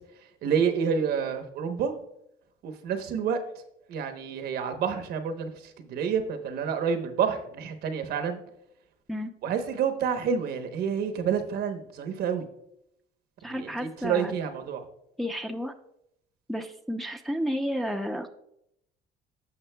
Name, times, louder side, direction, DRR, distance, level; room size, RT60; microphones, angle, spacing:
voice 1, 0.4-1.9 2.6-3.4 3.9-8.4 9.4-12.5 13.4-14.8, right 7 dB, 70° right, 7 dB, 0.9 m, -28 dB
voice 2, 13.4-14.3 15.2-15.7 16.5-18.3, equal, ahead, 4 dB, 0.6 m, -31 dB
15.5 x 5.4 x 2.2 m, 0.78 s
cardioid pair, 110°, 17 cm